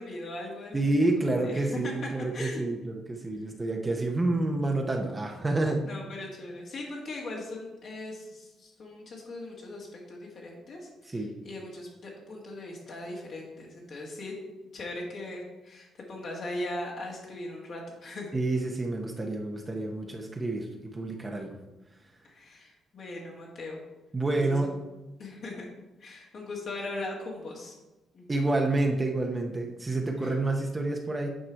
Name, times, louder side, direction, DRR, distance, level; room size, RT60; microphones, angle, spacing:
voice 1, 0.0-0.8 1.4-2.6 5.8-14.3 14.7-18.3 22.2-23.8 24.3-24.8 25.2-25.7 26.0-27.7 28.1-28.3 30.2-30.3, left 2 dB, 60° left, -3 dB, 1.9 m, -39 dB
voice 2, 0.7-5.8 11.1-11.3 18.3-21.5 24.1-24.7 28.3-31.3, right 2 dB, 20° right, 2 dB, 0.9 m, -28 dB
8.9 x 4.9 x 4.6 m, 1.1 s
cardioid pair, 90°, 0 cm